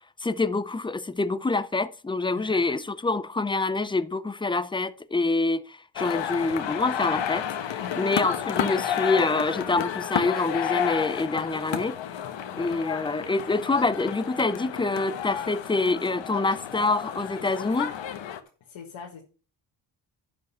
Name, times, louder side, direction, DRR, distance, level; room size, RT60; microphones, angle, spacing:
voice 1, 0.2-12.0 12.6-17.9, left 3 dB, 10° left, 0.5 m, -26 dB
voice 2, 2.4-2.8 7.8-8.3 18.7-19.2, left 7 dB, 90° left, 1.7 m, -41 dB
sound 1, 6.0-18.4, left 9 dB, 70° left, 1.2 m, -31 dB
11.5 x 5.3 x 5.5 m
cardioid pair, 115°, 46 cm